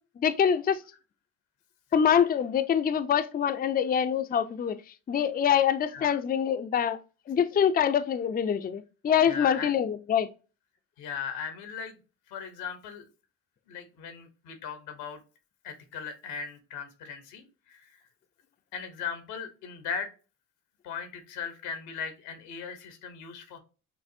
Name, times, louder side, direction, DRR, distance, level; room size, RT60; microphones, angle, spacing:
voice 1, 0.2-0.8 1.9-4.8 5.1-7.0 7.3-10.3, left 8 dB, 25° left, 0.4 m, -25 dB
voice 2, 9.2-9.7 11.0-12.0 12.3-13.1 13.7-15.2 15.6-18.0 18.7-20.1 20.8-23.6, left 6 dB, 85° left, 0.9 m, -38 dB
5.8 x 2.0 x 2.6 m
supercardioid pair, 60°, 36 cm